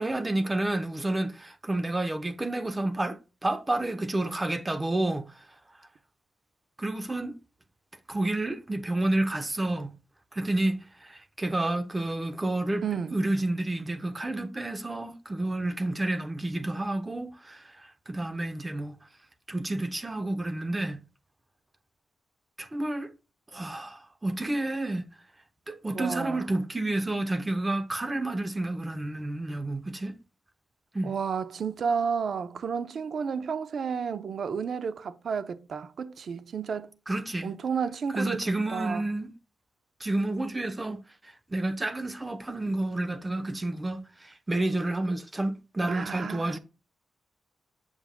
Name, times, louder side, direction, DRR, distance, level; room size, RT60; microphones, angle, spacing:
voice 1, 0.0-5.2 6.8-7.3 8.1-9.9 10.3-12.8 13.1-19.0 19.5-21.0 22.6-23.1 23.5-25.0 25.7-30.1 30.9-31.1 37.1-37.5 38.1-39.3 40.0-41.0 41.2-46.6, right 2 dB, 20° right, 0.8 m, -30 dB
voice 2, 12.8-13.1 25.9-26.5 31.0-37.0 37.4-39.0 45.9-46.6, right 6 dB, 65° right, 0.7 m, -32 dB
7.2 x 7.1 x 2.2 m
cardioid pair, 90°, 0 cm